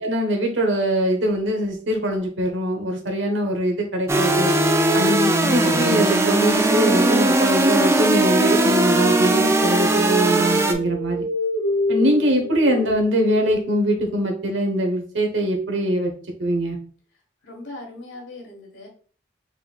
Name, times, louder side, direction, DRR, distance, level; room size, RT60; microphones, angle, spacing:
voice 1, 0.0-4.5 4.9-11.3 11.9-16.1 16.4-16.8, equal, 90° right, 3 dB, 1.1 m, -22 dB
sound 1, 4.1-10.7, right 2 dB, 15° right, 0.3 m, -19 dB
sound 2, 9.7-14.2, left 1 dB, 55° left, 1.1 m, -29 dB
voice 2, 17.4-18.9, left 2 dB, 75° left, 0 dB, 1.5 m, -39 dB
4.5 x 3.6 x 2.4 m, 0.43 s
head